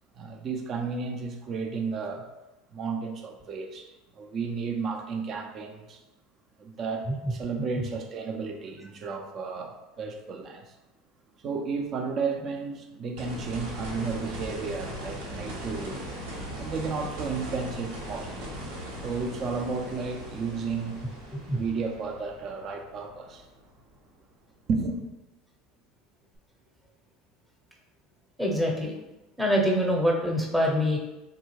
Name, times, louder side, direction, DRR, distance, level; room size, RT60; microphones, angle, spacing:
voice 1, 0.1-2.3 2.7-3.9 4.1-6.0 6.6-10.8 11.4-16.0 16.6-18.5 19.0-21.0 21.5-23.5 24.7-25.0, right 4 dB, 45° right, 4 dB, 0.5 m, -33 dB
sound 1, 13.2-24.1 26.4-26.5, right 1 dB, 75° right, 0.9 m, -39 dB
voice 2, 28.4-28.9 29.4-31.0, equal, 5° right, -1 dB, 0.8 m, -24 dB
3.5 x 2.3 x 3.2 m, 0.99 s
hypercardioid pair, 85°, 0 cm